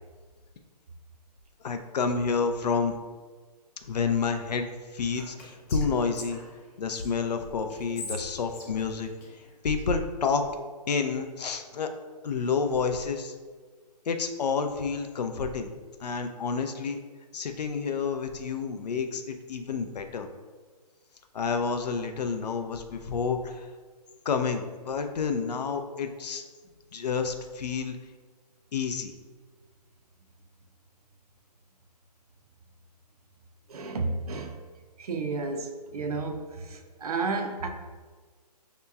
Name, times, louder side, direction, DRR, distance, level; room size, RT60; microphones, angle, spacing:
voice 1, 1.6-3.0 3.9-4.7 4.9-6.4 6.8-9.1 9.6-10.4 10.9-11.9 12.2-13.3 14.1-17.0 17.3-20.3 21.3-23.7 24.3-26.5 26.9-28.0 28.7-29.1, left 5 dB, 70° left, 7 dB, 0.5 m, -29 dB
Whispering, 5.1-7.1 7.7-9.9, left 3 dB, 20° left, 0.5 m, -43 dB
voice 2, 33.7-34.5 35.0-36.4 36.7-37.7, right 3 dB, 65° right, 4 dB, 0.5 m, -31 dB
5.5 x 2.9 x 2.3 m, 1.4 s
hypercardioid pair, 155°, 21 cm